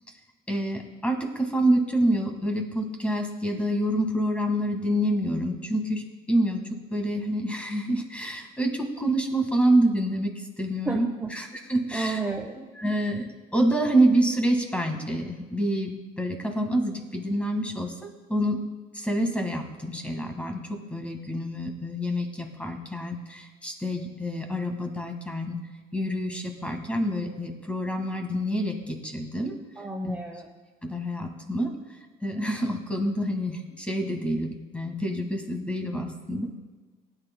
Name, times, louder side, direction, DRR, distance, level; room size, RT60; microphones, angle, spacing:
voice 1, 0.5-11.1 11.4-12.2 12.8-13.2 13.5-18.6 18.9-25.6 25.9-29.6 30.0-30.1 30.8-31.7 32.2-36.5, right 1 dB, 5° left, 4 dB, 1.7 m, -27 dB
voice 2, 10.8-11.3 11.9-12.7 29.8-30.5, right 3 dB, 10° right, 0 dB, 0.9 m, -31 dB
18.5 x 9.6 x 2.2 m, 1.3 s
cardioid pair, 110°, 17 cm